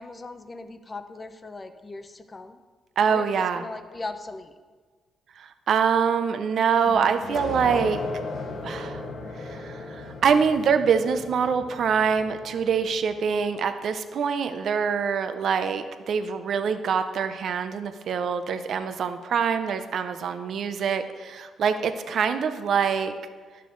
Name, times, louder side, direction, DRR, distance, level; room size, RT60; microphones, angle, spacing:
voice 1, 0.0-2.6 3.1-4.5, left 3 dB, 25° left, 9 dB, 0.7 m, -39 dB
voice 2, 3.0-3.6 5.4-8.0 8.6-9.0 9.4-23.1, right 6 dB, 60° right, 9 dB, 0.6 m, -25 dB
sound 1, 6.8-13.2, left 3 dB, 70° left, 1.4 m, -36 dB
11.0 x 6.7 x 3.9 m, 1.5 s
cardioid pair, 90°, 0 cm